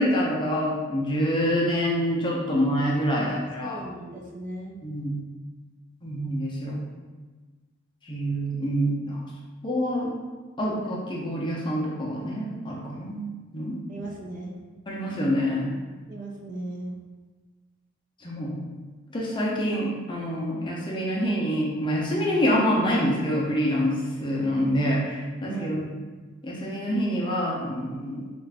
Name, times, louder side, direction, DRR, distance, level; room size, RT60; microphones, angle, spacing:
voice 1, 0.0-3.8 4.8-5.2 6.0-6.8 8.1-9.2 9.6-10.1 10.6-13.3 13.5-13.7 14.9-15.7 18.2-18.6 19.1-25.9 26.4-28.3, equal, 25° left, -4 dB, 0.5 m, -26 dB
voice 2, 3.2-4.8 13.9-14.6 16.1-17.0 25.5-25.9, right 2 dB, 40° right, -1 dB, 0.4 m, -37 dB
3.6 x 2.4 x 3.3 m, 1.4 s
head